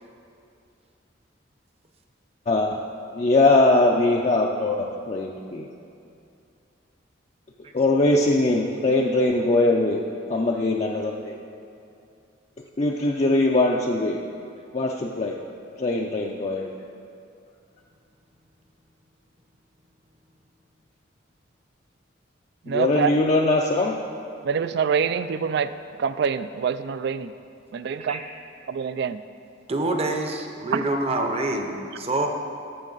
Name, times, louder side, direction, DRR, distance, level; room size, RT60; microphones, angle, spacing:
voice 1, 2.5-2.8 3.1-5.7 7.7-10.0 10.3-11.4 12.8-14.2 14.7-15.4 15.8-16.7 22.7-24.0, left 2 dB, 35° left, 0.5 m, -21 dB
voice 2, 22.7-23.1 24.5-25.7 26.0-27.2 27.9-28.2 28.8-29.2, right 6 dB, 60° right, 0.3 m, -25 dB
voice 3, 29.7-32.3, right 2 dB, 30° right, 0.8 m, -26 dB
13.5 x 6.5 x 3.9 m
head